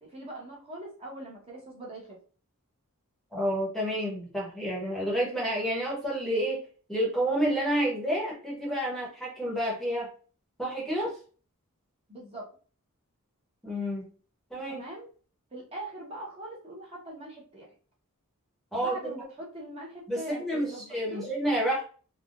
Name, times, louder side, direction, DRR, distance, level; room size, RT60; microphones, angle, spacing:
voice 1, 0.0-2.2 12.1-12.5 14.7-15.1 15.5-17.7 18.7-20.4 20.7-21.3, right 1 dB, 25° right, -3 dB, 0.9 m, -42 dB
voice 2, 3.3-6.6 6.9-10.1 10.6-11.1 13.6-14.1 14.5-14.8 18.7-19.2 20.1-20.7 20.9-21.9, equal, ahead, -4 dB, 0.9 m, -29 dB
3.4 x 2.2 x 2.4 m, 0.39 s
head